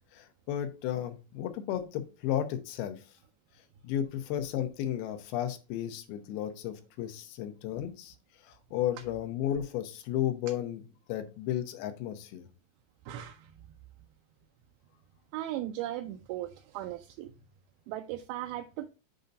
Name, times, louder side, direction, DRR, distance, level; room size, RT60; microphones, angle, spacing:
voice 1, 0.1-3.0 3.8-8.2 8.4-10.8 11.1-12.5, left 11 dB, 85° left, 8 dB, 2.8 m, -33 dB
voice 2, 13.1-13.5 15.3-17.3 17.9-18.9, right 13 dB, 85° right, 5 dB, 2.4 m, -37 dB
7.8 x 2.7 x 5.1 m, 0.31 s
omnidirectional pair, 4.4 m